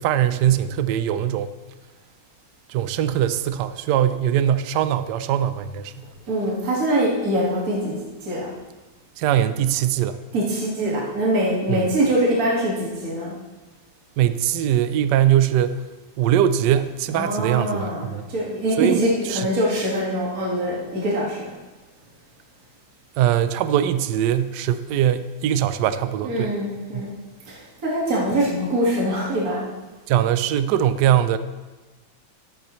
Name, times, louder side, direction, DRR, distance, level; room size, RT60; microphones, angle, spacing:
voice 1, 0.0-1.5 2.7-5.9 9.2-10.2 11.7-11.9 14.2-15.8 16.2-18.3 18.8-19.5 23.2-26.6 26.9-27.0 30.1-31.4, right 10 dB, 75° right, 12 dB, 1.0 m, -21 dB
voice 2, 6.3-8.0 8.2-8.5 10.3-13.3 17.1-21.5 26.2-27.1 27.5-29.6, right 1 dB, 45° right, -5 dB, 2.2 m, -23 dB
13.0 x 9.0 x 3.1 m, 1.2 s
omnidirectional pair, 2.2 m